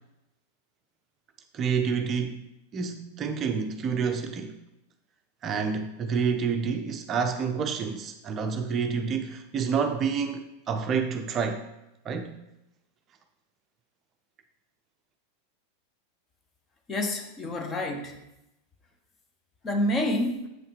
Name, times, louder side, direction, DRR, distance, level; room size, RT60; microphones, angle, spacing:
voice 1, 1.5-2.5 2.7-4.6 5.4-11.7 12.0-12.4, right 6 dB, 30° right, 6 dB, 0.6 m, -28 dB
voice 2, 16.9-18.2 19.6-20.5, left 1 dB, 25° left, 4 dB, 1.1 m, -28 dB
7.9 x 5.6 x 4.9 m, 0.91 s
figure-of-eight pair, 90°, 0 cm